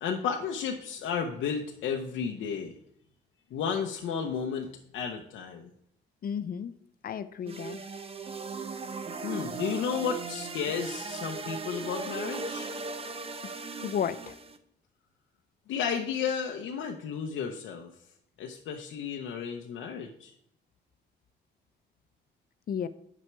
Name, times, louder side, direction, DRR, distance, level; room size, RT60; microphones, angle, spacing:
voice 1, 0.0-2.7 3.5-5.7 9.2-12.7 15.7-17.9 18.4-20.3, left 6 dB, 80° left, 2 dB, 0.8 m, -33 dB
voice 2, 6.2-6.7 7.0-7.8 13.8-14.4 22.7-22.9, left 8 dB, 50° left, 14 dB, 0.6 m, -32 dB
sound 1, 7.5-14.6, right 4 dB, 30° right, 0.7 m, -38 dB
7.9 x 6.1 x 4.5 m, 0.72 s
cardioid pair, 90°, 20 cm